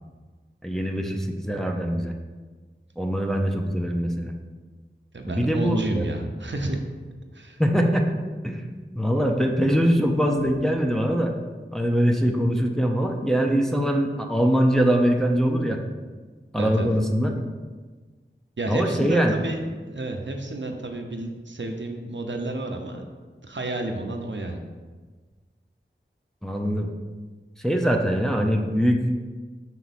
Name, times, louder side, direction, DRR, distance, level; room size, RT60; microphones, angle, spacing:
voice 1, 0.6-2.1 3.0-4.3 5.3-6.0 7.6-11.3 11.7-15.8 16.5-17.5 18.7-19.3 26.4-26.9 27.6-29.2, equal, ahead, 1 dB, 0.6 m, -23 dB
voice 2, 5.1-6.8 7.3-7.6 16.5-16.9 18.6-23.0 23.4-24.6, right 2 dB, 65° right, 3 dB, 0.7 m, -30 dB
5.9 x 4.5 x 4.1 m, 1.4 s
wide cardioid pair, 50°, 21 cm